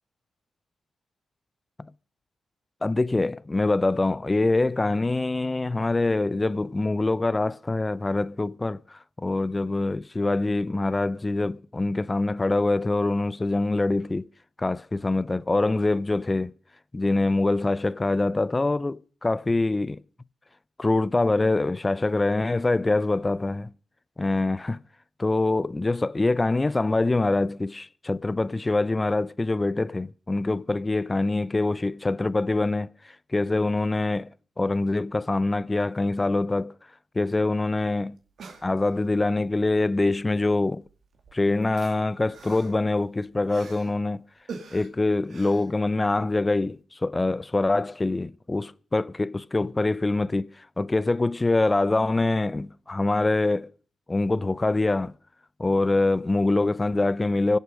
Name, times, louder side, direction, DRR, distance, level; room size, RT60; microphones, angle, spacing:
voice 1, 2.8-14.3 14.6-16.5 16.9-20.0 20.8-23.7 24.2-24.8 25.2-32.9 33.3-34.3 34.6-36.7 37.1-38.2 38.6-40.8 41.3-44.2 44.7-50.5 50.8-53.7 54.1-55.1 55.6-57.6, left 2 dB, 30° left, 0.6 m, -24 dB
sound 1, 37.5-37.6 37.7-37.8 38.2-39.2 40.3-40.5 40.8-44.0 44.5-46.3 46.7-46.8, right 5 dB, 70° right, 2.2 m, -45 dB
24.0 x 8.2 x 5.0 m
supercardioid pair, 45°, 0 cm